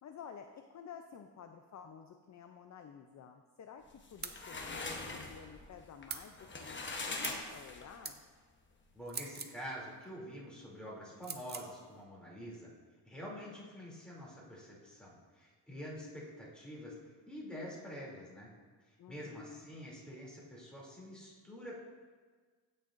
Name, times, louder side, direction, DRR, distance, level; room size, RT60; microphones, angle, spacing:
voice 1, 0.0-6.8 7.1-8.2 19.0-19.7, left 7 dB, 40° left, 6 dB, 0.5 m, -52 dB
sound 1, 3.9-8.1, left 3 dB, 25° left, 0.9 m, -42 dB
sound 2, 4.2-4.4 6.1-6.3 7.2-7.4 8.0-8.2 9.1-9.6 11.2-11.7, right 5 dB, 25° right, 0.5 m, -42 dB
voice 2, 8.9-12.7 13.0-16.9 17.3-18.5 19.1-21.8, equal, ahead, -6 dB, 2.8 m, -47 dB
15.0 x 6.5 x 2.5 m, 1.5 s
wide cardioid pair, 135°, 44 cm